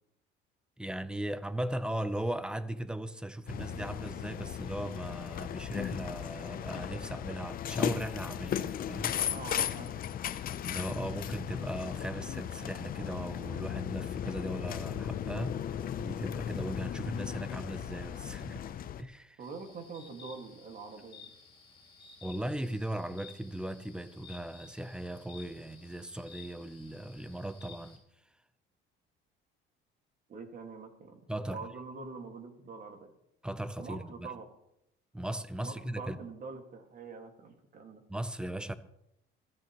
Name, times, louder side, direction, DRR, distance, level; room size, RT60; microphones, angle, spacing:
voice 1, 0.8-9.1 9.6-9.7 10.7-18.6 19.0-19.4 22.2-28.0 31.3-31.6 33.4-34.3 35.1-36.2 38.1-38.7, right 1 dB, 5° right, 0.6 m, -38 dB
sound 1, 3.5-19.0, left 10 dB, 45° left, 0.6 m, -36 dB
voice 2, 9.3-9.9 19.4-21.3 30.3-33.1 33.8-34.5 35.6-38.0, right 4 dB, 45° right, 2.0 m, -45 dB
sound 2, 19.4-28.0, left 5 dB, 25° left, 3.6 m, -55 dB
22.0 x 14.0 x 3.1 m
cardioid pair, 145°, 21 cm